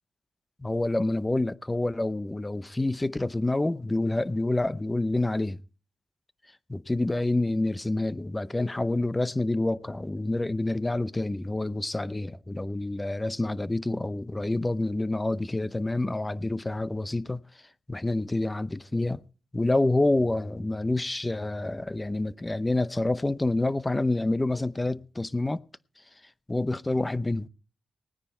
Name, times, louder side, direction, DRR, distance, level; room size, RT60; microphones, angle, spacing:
voice 1, 0.6-5.6 6.7-17.4 17.9-19.2 19.5-25.6 26.5-27.5, left 2 dB, 15° left, 0.6 m, -27 dB
19.0 x 9.9 x 4.4 m
cardioid pair, 90°, 0 cm